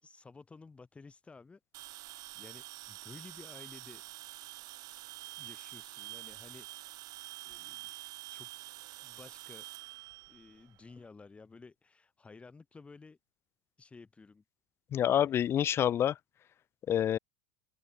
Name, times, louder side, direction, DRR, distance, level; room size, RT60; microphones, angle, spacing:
voice 1, 0.0-4.0 5.4-6.7 7.4-7.9 8.3-8.5 9.0-9.7 10.3-13.2 13.8-14.4 14.9-15.3, left 4 dB, 15° left, 2.8 m, -54 dB
sound 1, 1.7-11.0, right 18 dB, 45° right, 1.8 m, -47 dB
voice 2, 14.9-16.2 16.9-17.2, left 10 dB, 30° left, 0.5 m, -27 dB
open air
supercardioid pair, 130°, 9 cm